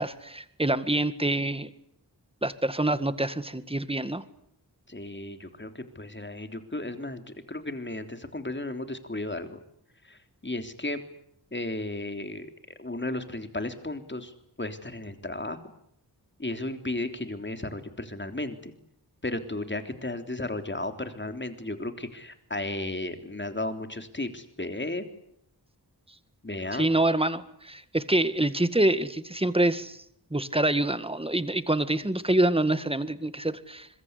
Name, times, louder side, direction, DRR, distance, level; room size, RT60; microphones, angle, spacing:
voice 1, 0.0-1.7 2.4-4.2 26.7-30.0 30.3-33.9, right 1 dB, 15° right, 12 dB, 1.9 m, -26 dB
voice 2, 4.9-9.6 10.0-11.0 11.5-15.6 16.4-18.7 19.2-25.1 26.4-26.9, left 2 dB, 30° left, 7 dB, 3.5 m, -34 dB
25.5 x 22.5 x 9.7 m, 0.72 s
wide cardioid pair, 70°, 40 cm